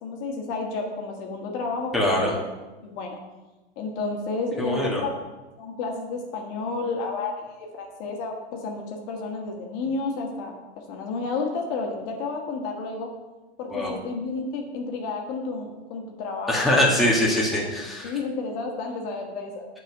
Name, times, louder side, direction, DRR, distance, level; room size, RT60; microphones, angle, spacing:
voice 1, 0.0-1.9 2.2-2.4 2.8-3.2 3.7-5.1 5.6-7.3 7.8-13.1 13.6-16.8 17.5-17.7 18.0-19.7, left 3 dB, 50° left, 1 dB, 1.6 m, -31 dB
voice 2, 1.9-2.3 4.6-5.0 13.7-13.9 16.5-18.1, left 1 dB, ahead, -4 dB, 1.6 m, -22 dB
7.5 x 4.8 x 5.6 m, 1.1 s
hypercardioid pair, 120°, 33 cm